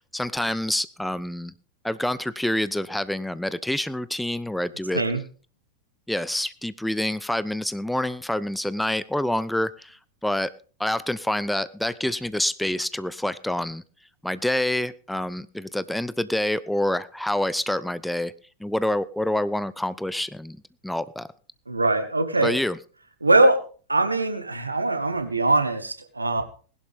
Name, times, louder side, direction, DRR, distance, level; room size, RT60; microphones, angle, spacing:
voice 1, 0.0-1.5 1.8-5.0 6.1-10.5 10.8-13.8 14.2-18.3 18.6-20.6 20.8-21.3 22.4-22.8, left 1 dB, 5° left, 17 dB, 0.6 m, -27 dB
voice 2, 21.7-22.6 23.2-23.6 23.9-26.4, right 2 dB, 80° right, 9 dB, 1.8 m, -21 dB
20.0 x 11.5 x 3.6 m, 0.39 s
figure-of-eight pair, 90°, 0 cm